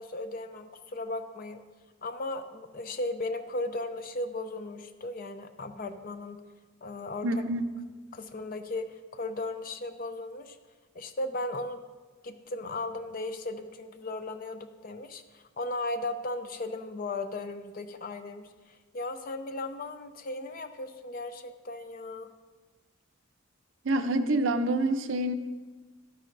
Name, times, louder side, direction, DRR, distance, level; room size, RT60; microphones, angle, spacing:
voice 1, 0.0-1.6 2.0-6.4 6.8-7.3 8.1-10.6 10.9-11.8 12.2-22.3, left 2 dB, 45° left, 9 dB, 0.5 m, -36 dB
voice 2, 7.2-7.6 23.8-25.3, right 1 dB, 70° right, 9 dB, 0.6 m, -27 dB
12.0 x 9.7 x 2.6 m, 1.3 s
head